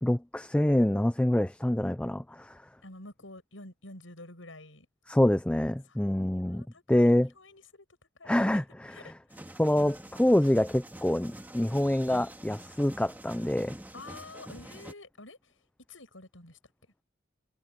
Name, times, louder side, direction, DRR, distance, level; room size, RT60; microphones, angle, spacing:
voice 1, 0.0-2.6 5.1-7.3 8.3-8.6 9.6-13.8, left 1 dB, 5° left, 0.4 m, -26 dB
voice 2, 2.8-4.9 5.9-6.0 6.3-7.9 8.2-9.5 13.9-15.5 15.9-16.6, left 2 dB, 80° left, 7.4 m, -49 dB
sound 1, 9.3-14.9, right 1 dB, 10° right, 2.0 m, -46 dB
head